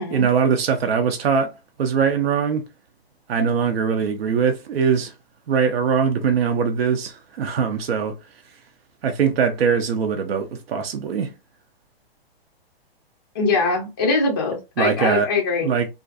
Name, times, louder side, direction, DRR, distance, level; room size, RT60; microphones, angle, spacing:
voice 1, 0.0-1.5 1.8-2.6 3.3-5.1 5.5-8.2 9.0-11.3 14.8-15.3 15.6-15.9, right 6 dB, 75° right, 0.6 m, -21 dB
voice 2, 13.3-15.7, left 3 dB, 25° left, 0.3 m, -22 dB
2.5 x 2.4 x 2.4 m
hypercardioid pair, 165°, 31 cm